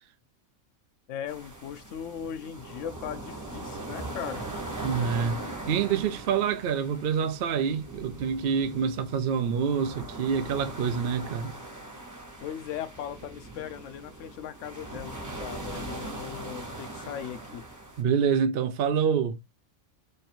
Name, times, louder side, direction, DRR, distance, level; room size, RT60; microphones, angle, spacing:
voice 1, 1.1-4.5 12.4-17.6, left 9 dB, 70° left, 0.9 m, -38 dB
sound 1, 1.3-18.0, right 2 dB, 20° right, 0.6 m, -40 dB
voice 2, 4.8-11.5 18.0-19.4, right 7 dB, 65° right, 0.6 m, -27 dB
3.2 x 2.5 x 4.2 m
omnidirectional pair, 1.4 m